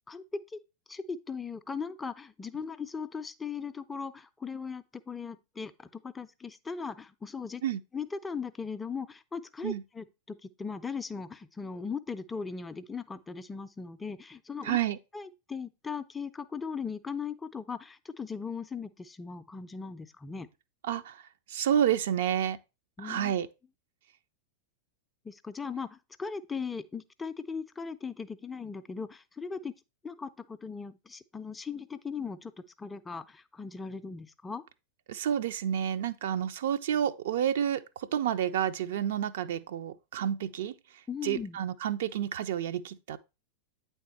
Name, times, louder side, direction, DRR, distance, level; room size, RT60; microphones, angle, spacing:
voice 1, 0.1-0.6 0.9-7.6 7.9-14.8 15.1-20.5 23.0-23.3 25.2-29.7 30.0-32.5 32.8-34.6 41.1-41.6, left 5 dB, 15° left, 0.4 m, -38 dB
voice 2, 14.6-15.0 20.8-21.2 21.5-22.6 23.0-23.5 35.1-40.7 41.2-43.2, right 10 dB, 55° right, 0.4 m, -30 dB
8.7 x 3.5 x 4.1 m
figure-of-eight pair, 90°, 0 cm